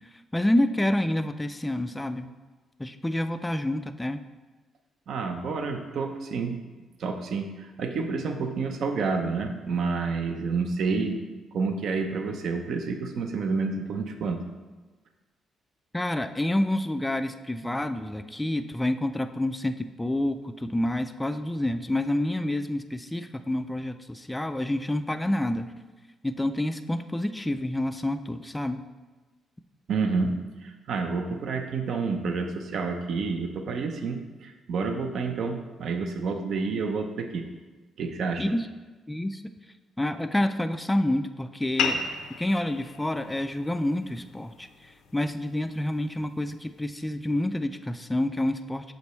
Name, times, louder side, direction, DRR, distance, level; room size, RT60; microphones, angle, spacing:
voice 1, 0.3-2.3 2.8-4.2 15.9-25.7 26.2-28.8 38.4-38.7 39.1-39.4 40.0-42.0 42.4-48.9, left 1 dB, 10° left, 8 dB, 0.3 m, -28 dB
voice 2, 5.1-6.5 7.0-11.2 11.5-14.4 29.9-30.4 30.6-37.5 38.0-38.4, right 4 dB, 65° right, 5 dB, 0.7 m, -29 dB
sound 1, 41.8-46.8, left 5 dB, 85° left, 0.6 m, -35 dB
6.8 x 5.2 x 3.1 m, 1.3 s
cardioid pair, 90°, 0 cm